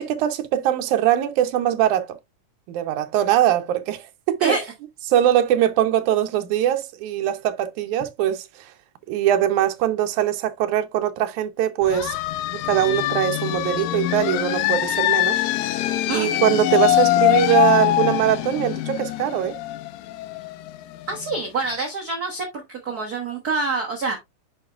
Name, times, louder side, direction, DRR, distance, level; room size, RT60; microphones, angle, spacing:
voice 1, 0.0-2.2 2.7-4.5 5.1-8.4 9.1-12.2 12.7-15.4 16.1-19.6, right 11 dB, 85° right, 2.2 m, -21 dB
sound 1, 11.8-21.3, left 15 dB, 80° left, 1.8 m, -23 dB
voice 2, 21.1-24.2, right 3 dB, 55° right, 1.1 m, -26 dB
9.7 x 4.4 x 2.4 m
omnidirectional pair, 3.4 m